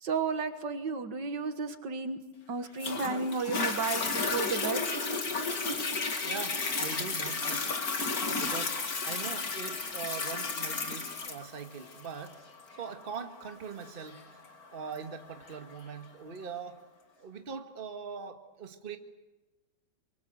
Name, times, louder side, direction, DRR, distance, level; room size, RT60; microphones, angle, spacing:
voice 1, 0.0-2.2 2.5-4.9, right 4 dB, 65° right, 8 dB, 2.2 m, -33 dB
Toilet flush, 2.8-15.8 16.4-16.5, left 4 dB, 50° left, 2.4 m, -33 dB
voice 2, 6.2-7.7 8.2-8.8 9.0-12.4 12.8-14.2 14.7-16.8 17.2-19.0, right 6 dB, 30° right, 6 dB, 1.6 m, -41 dB
24.5 x 24.0 x 7.9 m, 1.1 s
omnidirectional pair, 2.1 m